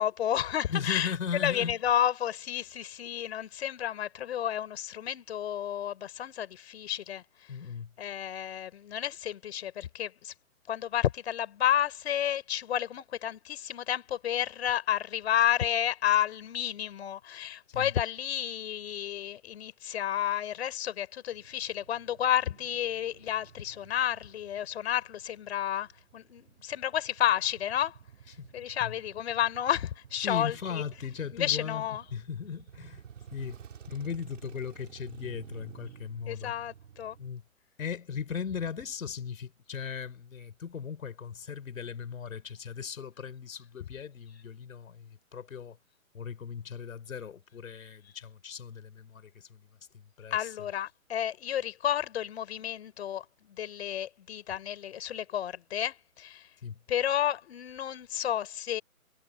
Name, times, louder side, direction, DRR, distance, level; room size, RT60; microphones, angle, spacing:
voice 1, 0.0-1.1 1.4-7.2 8.0-10.3 10.7-25.9 26.1-28.0 28.5-30.6 31.3-32.0 36.3-37.2 50.3-56.4 56.9-58.8, left 10 dB, 45° left, 4.6 m, -31 dB
voice 2, 0.7-1.8 7.5-7.9 17.7-17.9 28.3-28.5 28.8-28.9 30.2-31.8 32.1-33.0 33.3-33.6 33.9-36.5 37.2-37.4 37.8-45.8 46.1-49.7 49.9-50.6 56.6-56.8, left 7 dB, 65° left, 5.6 m, -38 dB
Male speech man speaking / Motorcycle / Idling, 21.3-37.3, right 8 dB, 60° right, 5.3 m, -53 dB
hypercardioid pair, 155°, 43 cm